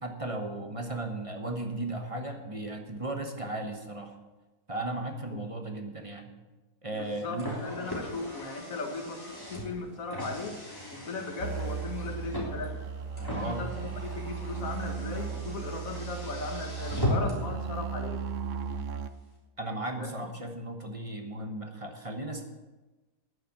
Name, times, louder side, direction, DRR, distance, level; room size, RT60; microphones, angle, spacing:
voice 1, 0.0-4.2 4.7-6.3 6.8-7.5 13.3-13.6 19.6-22.4, right 2 dB, 20° right, 4 dB, 0.9 m, -36 dB
voice 2, 6.9-10.6 10.9-12.8 13.3-18.2 20.0-20.1, left 3 dB, 45° left, 4 dB, 1.8 m, -37 dB
Car, 6.9-17.6, left 1 dB, 10° left, 3.2 m, -38 dB
sound 1, 11.4-19.1, right 6 dB, 75° right, 0.7 m, -36 dB
10.0 x 10.0 x 7.2 m, 1.2 s
omnidirectional pair, 2.1 m